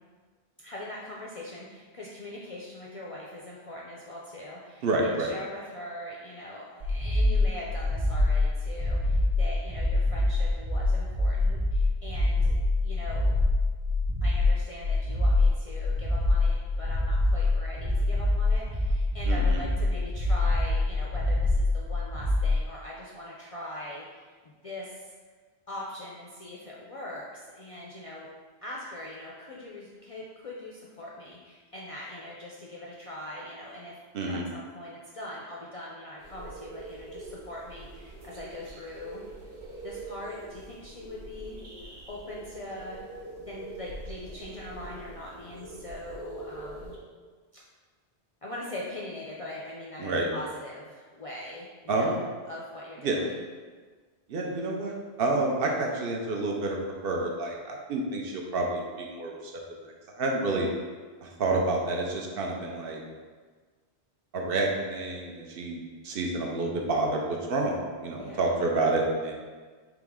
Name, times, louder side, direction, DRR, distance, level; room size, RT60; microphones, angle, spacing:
voice 1, 0.6-13.4 14.2-25.1 25.7-28.3 28.6-39.2 39.8-41.6 42.1-43.0 43.4-47.0 47.5-47.6 48.4-52.2 52.5-53.4 68.2-68.6, left 1 dB, 55° left, -4 dB, 0.4 m, -41 dB
voice 2, 4.8-5.3 19.3-19.6 34.1-34.4 50.0-50.3 51.9-52.2 53.0-53.2 54.3-56.8 57.0-59.5 59.8-60.7 61.2-63.0 64.3-69.3, right 2 dB, 65° right, 0 dB, 0.8 m, -29 dB
sound 1, 6.8-22.6, left 2 dB, 45° right, 0.4 m, -25 dB
sound 2, 36.2-47.0, right 2 dB, 85° right, 1.1 m, -44 dB
3.5 x 3.0 x 3.5 m, 1.5 s
omnidirectional pair, 1.1 m